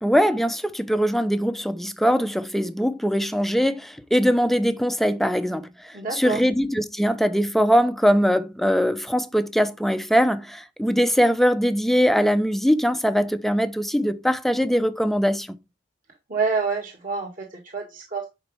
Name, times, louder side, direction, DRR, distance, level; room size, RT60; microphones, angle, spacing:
voice 1, 0.0-15.6, equal, ahead, 0.7 m, -21 dB
voice 2, 5.9-6.4 16.3-18.3, right 4 dB, 45° right, 2.0 m, -27 dB
10.5 x 5.2 x 3.5 m
head